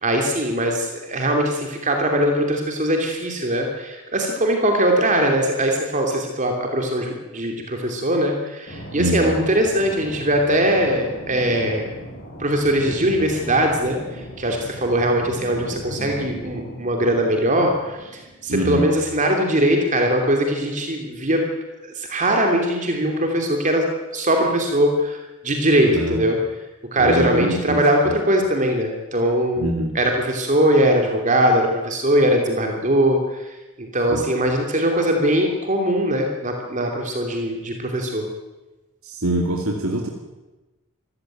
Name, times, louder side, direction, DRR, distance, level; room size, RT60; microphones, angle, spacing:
voice 1, 0.0-11.8 12.4-21.5 21.9-25.2 25.4-26.4 26.9-33.5 33.9-38.3, right 1 dB, 35° right, 2 dB, 2.8 m, -21 dB
sound 1, 8.7-18.5, equal, 50° left, 7.9 m, -37 dB
voice 2, 9.0-9.4 18.5-18.9 25.9-26.2 27.0-27.8 28.1-28.2 29.6-29.9 34.1-34.2 39.0-40.1, right 1 dB, 70° right, 1 dB, 2.5 m, -23 dB
26.5 x 15.0 x 9.2 m, 1.1 s
head